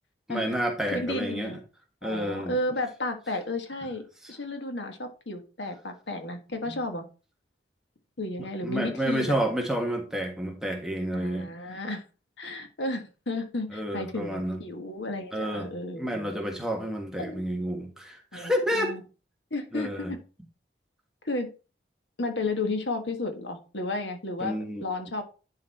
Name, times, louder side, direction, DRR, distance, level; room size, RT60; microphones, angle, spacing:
voice 1, 0.3-1.6 2.0-2.6 4.2-4.3 6.7-6.8 8.4-11.5 13.7-14.6 15.3-19.0 19.7-20.1 24.4-24.9, equal, 5° right, 1.4 m, -30 dB
voice 2, 0.9-1.6 2.0-4.0 4.3-7.0 8.2-9.4 11.1-12.0 12.4-16.3 17.2-17.5 18.3-19.0 19.5-20.2 21.2-21.5 22.2-25.2, left 2 dB, 85° left, 1.5 m, -33 dB
10.5 x 4.1 x 4.2 m
head